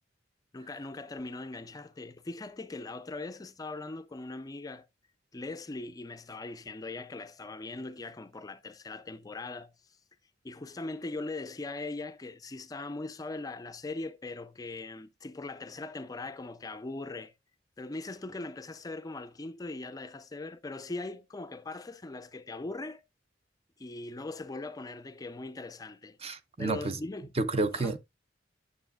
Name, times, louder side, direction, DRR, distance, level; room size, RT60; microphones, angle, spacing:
voice 1, 0.5-4.9 5.3-10.0 10.4-17.3 17.8-23.0 23.8-26.2 26.6-27.3 27.7-27.9, left 2 dB, 20° left, 0.4 m, -40 dB
voice 2, 26.2-27.0 27.4-28.0, right 3 dB, 35° right, 0.6 m, -30 dB
9.2 x 6.7 x 2.3 m
head